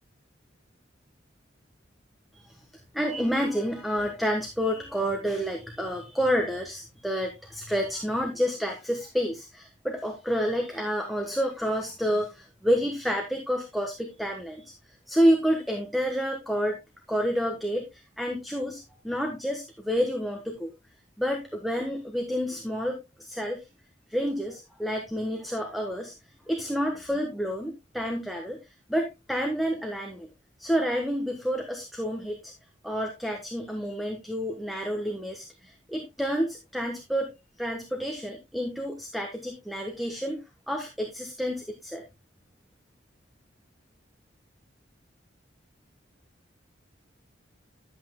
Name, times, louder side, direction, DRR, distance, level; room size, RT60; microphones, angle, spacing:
voice 1, 2.9-14.7 15.1-16.8 17.1-20.7 21.2-23.6 24.1-26.1 26.5-28.6 28.9-30.3 30.6-32.5 32.8-37.3 37.6-40.4 40.7-42.0, equal, ahead, 3 dB, 1.2 m, -29 dB
11.5 x 8.0 x 2.3 m, 0.22 s
head